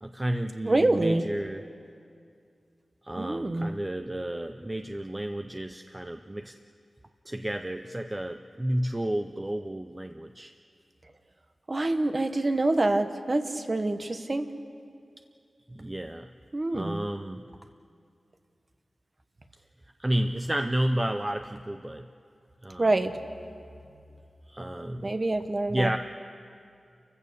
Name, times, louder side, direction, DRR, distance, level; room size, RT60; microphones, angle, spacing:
voice 1, 0.0-1.6 3.0-6.5 7.3-10.5 15.7-16.3 16.7-17.5 20.0-22.1 22.6-22.9 24.5-25.1 25.7-26.0, right 1 dB, 15° right, 7 dB, 0.5 m, -31 dB
voice 2, 0.6-1.3 3.2-3.7 11.7-14.5 16.5-17.0 22.8-23.2 25.0-26.0, right 2 dB, 35° right, 8 dB, 1.1 m, -26 dB
30.0 x 15.5 x 6.8 m, 2.4 s
wide cardioid pair, 115°, 0 cm